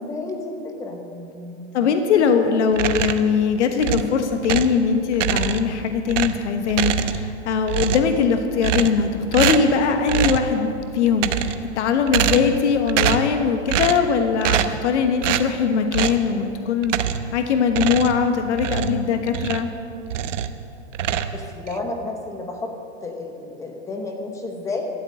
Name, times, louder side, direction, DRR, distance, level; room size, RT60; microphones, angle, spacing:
voice 1, 0.0-1.7 21.3-22.8 23.0-24.9, left 2 dB, 10° left, 3 dB, 0.9 m, -31 dB
voice 2, 1.7-19.7, left 6 dB, 65° left, 6 dB, 1.3 m, -21 dB
sound 1, 2.7-3.3 3.8-4.8 5.1-5.8 6.1-7.4 7.7-8.2 8.6-9.1 9.3-9.8 10.1-10.5 11.1-11.7 12.1-12.6 12.9-13.3 13.7-14.1 14.4-14.8 15.2-15.5 15.9-16.2 16.8-17.3 17.7-19.7 20.1-20.6 20.9-21.8, right 10 dB, 80° right, 0.9 m, -24 dB
13.0 x 8.0 x 8.6 m, 2.7 s
supercardioid pair, 165°, 37 cm